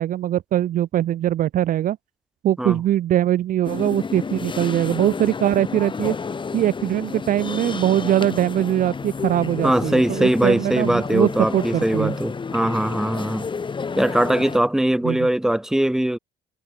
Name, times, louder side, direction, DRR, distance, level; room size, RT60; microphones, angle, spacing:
voice 1, 0.0-2.0 2.4-6.1 6.5-12.1 15.0-15.3, right 12 dB, 55° right, 0.6 m, -22 dB
sound 1, 3.6-14.6, left 5 dB, 30° left, 4.4 m, -30 dB
voice 2, 9.6-13.5 14.0-16.2, right 1 dB, 5° right, 1.0 m, -21 dB
cardioid pair, 110°, 17 cm